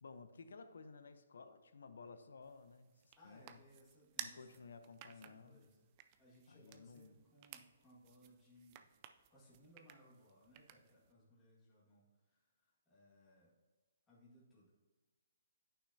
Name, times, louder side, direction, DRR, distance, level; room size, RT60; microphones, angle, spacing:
voice 1, 0.0-3.6 4.2-5.6 6.5-7.2, left 4 dB, 80° left, 10 dB, 0.7 m, -56 dB
sound 1, 2.4-11.1, right 11 dB, 25° right, 0.4 m, -56 dB
voice 2, 3.1-5.9 6.2-13.5 14.1-14.7, equal, 10° left, -8 dB, 1.9 m, -66 dB
9.9 x 5.8 x 2.8 m, 1.3 s
hypercardioid pair, 160°, 0 cm